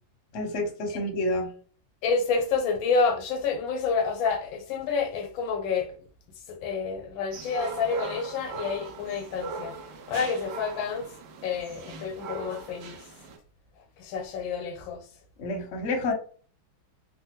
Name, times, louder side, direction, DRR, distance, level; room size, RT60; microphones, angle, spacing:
voice 1, 0.3-1.5 15.4-16.1, left 2 dB, 55° left, 0.9 m, -29 dB
voice 2, 2.0-5.9 6.5-9.7 10.1-11.1 11.4-13.0 14.0-15.0, left 5 dB, 85° left, 1.4 m, -28 dB
sound 1, 7.3-13.4, right 4 dB, 85° right, 1.4 m, -40 dB
3.5 x 2.2 x 2.8 m
omnidirectional pair, 2.1 m